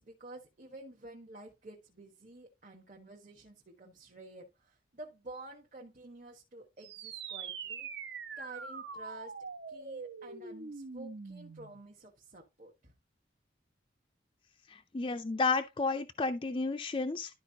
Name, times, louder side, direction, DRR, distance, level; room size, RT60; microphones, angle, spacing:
voice 1, 0.0-7.9 8.4-9.3 9.7-12.9, right 2 dB, 45° right, 1.4 m, -50 dB
sound 1, 6.8-11.8, right 5 dB, 65° right, 1.1 m, -43 dB
voice 2, 14.7-17.3, left 3 dB, 25° left, 0.4 m, -32 dB
12.5 x 4.5 x 2.8 m
head